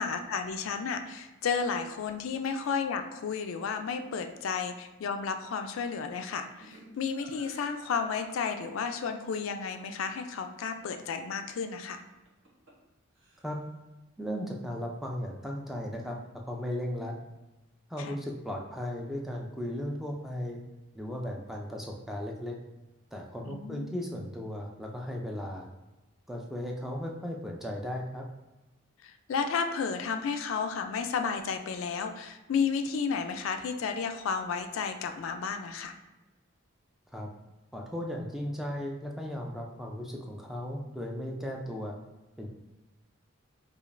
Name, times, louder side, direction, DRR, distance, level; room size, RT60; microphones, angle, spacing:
voice 1, 0.0-12.0 18.0-18.2 23.4-24.0 29.0-35.9, left 5 dB, 70° left, 7 dB, 0.3 m, -32 dB
Laughter, 6.6-9.3 12.1-12.9 13.2-13.7, right 1 dB, 60° right, 0.8 m, -52 dB
voice 2, 14.2-16.2 16.5-17.2 17.9-20.6 21.0-22.6 23.1-25.7 26.3-28.2 37.1-37.3 37.7-42.0 42.4-42.5, equal, ahead, -1 dB, 0.3 m, -36 dB
4.9 x 2.4 x 2.5 m, 1.0 s
head